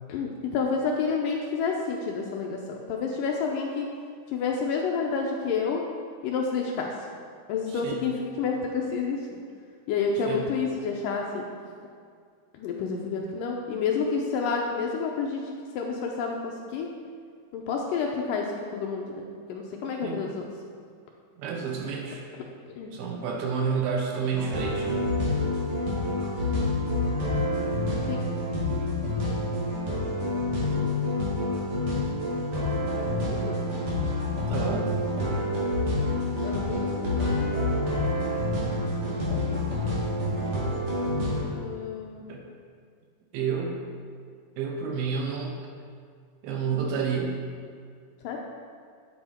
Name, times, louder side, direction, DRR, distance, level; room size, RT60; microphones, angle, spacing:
voice 1, 0.1-3.9 4.3-5.8 6.2-6.9 7.5-9.4 9.9-11.5 12.5-16.9 17.5-20.5 22.8-22.9 28.1-28.3 33.0-33.5 35.2-35.3 36.4-37.2 39.1-39.6 40.0-40.1 41.5-42.3 48.2-48.4, left 5 dB, 80° left, 0 dB, 2.1 m, -29 dB
voice 2, 7.7-8.1 10.3-10.5 20.0-20.2 21.4-22.2 22.9-25.2 34.5-34.9 42.3-42.4 43.3-43.8 44.6-45.6 46.4-47.4, right 6 dB, 80° right, 1 dB, 2.9 m, -30 dB
sound 1, 24.3-41.4, left 2 dB, 45° right, 2.4 m, -28 dB
9.7 x 7.8 x 4.3 m, 2.1 s
omnidirectional pair, 4.4 m